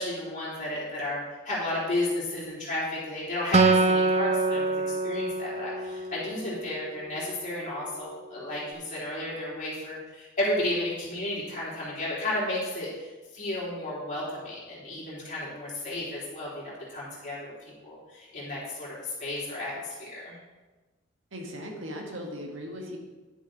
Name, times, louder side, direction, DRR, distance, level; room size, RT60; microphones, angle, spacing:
voice 1, 0.0-17.5 17.8-20.4, left 1 dB, 35° left, -7 dB, 3.4 m, -33 dB
Acoustic guitar, 3.5-7.0, right 3 dB, 30° right, 0.4 m, -25 dB
voice 2, 21.3-23.0, equal, 70° right, 1 dB, 1.6 m, -38 dB
11.0 x 7.0 x 4.0 m, 1.2 s
head